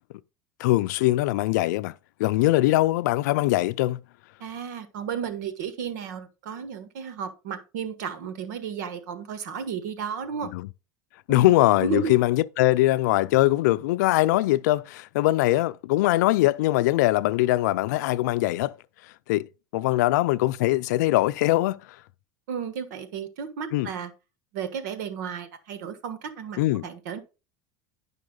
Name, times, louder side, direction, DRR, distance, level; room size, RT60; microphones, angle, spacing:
voice 1, 0.6-1.9 2.2-4.0 10.5-10.7 11.3-18.7 19.3-19.5 19.7-21.8 23.7-23.9 26.6-26.9, left 17 dB, 85° left, 0.4 m, -22 dB
voice 2, 4.4-10.5 11.3-12.2 22.5-24.1 24.5-27.2, right 6 dB, 85° right, 1.4 m, -33 dB
10.5 x 5.5 x 3.8 m
supercardioid pair, 120°, 9 cm